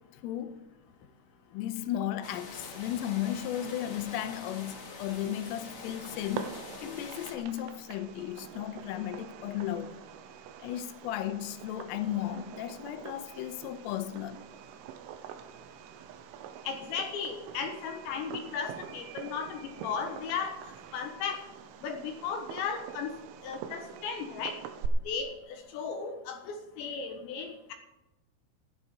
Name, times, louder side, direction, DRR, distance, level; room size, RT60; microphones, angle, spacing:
voice 1, 0.2-0.6 1.5-10.0 10.6-14.4, left 11 dB, 85° left, 3.5 m, -35 dB
sound 1, 2.2-7.4, left 3 dB, 40° left, 2.0 m, -45 dB
Fireworks, 5.9-24.9, right 9 dB, 80° right, 3.5 m, -45 dB
voice 2, 16.6-20.6 20.9-21.4 21.8-23.1 23.4-24.6 25.0-27.7, left 6 dB, 70° left, 3.2 m, -35 dB
15.5 x 12.0 x 5.0 m
omnidirectional pair, 5.8 m